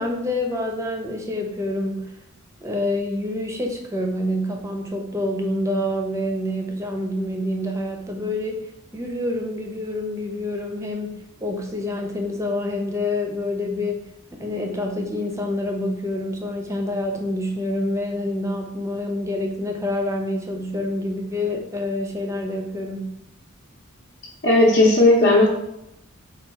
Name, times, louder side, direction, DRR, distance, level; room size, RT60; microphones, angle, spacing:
voice 1, 0.0-2.1 2.6-8.6 8.9-14.1 14.4-23.1, left 1 dB, 15° right, 2 dB, 0.5 m, -27 dB
voice 2, 24.4-25.5, left 2 dB, 55° left, -5 dB, 0.8 m, -15 dB
4.5 x 2.3 x 4.5 m, 0.84 s
head